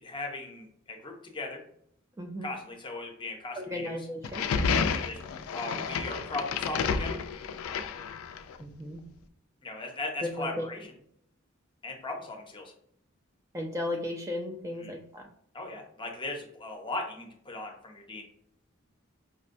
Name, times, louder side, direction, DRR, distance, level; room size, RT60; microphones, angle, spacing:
voice 1, 0.0-1.6 2.4-3.9 4.8-5.2 5.5-7.2 9.6-10.9 11.8-12.7 14.8-14.9 15.5-18.2, left 2 dB, 25° left, 2 dB, 0.6 m, -38 dB
voice 2, 2.2-2.5 3.6-4.4 8.6-9.0 10.4-10.7 13.5-15.2, left 1 dB, 15° right, 1 dB, 0.3 m, -35 dB
sound 1, 4.2-8.6, left 5 dB, 80° left, 0.3 m, -30 dB
5.0 x 2.1 x 2.5 m, 0.67 s
head